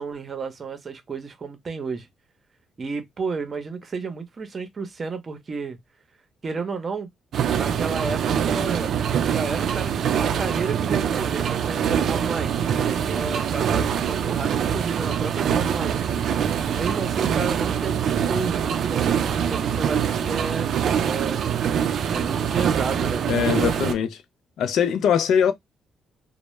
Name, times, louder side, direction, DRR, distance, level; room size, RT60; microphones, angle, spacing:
voice 1, 0.0-2.1 2.8-5.8 6.4-7.1 7.5-16.1 16.6-20.7 21.0-21.6 22.1-23.9, right 4 dB, 40° right, 0.7 m, -32 dB
sound 1, 7.3-23.9, right 8 dB, 65° right, 0.3 m, -24 dB
voice 2, 23.3-24.2 24.6-25.5, left 8 dB, 75° left, 0.4 m, -21 dB
2.1 x 2.0 x 3.0 m
cardioid pair, 90°, 0 cm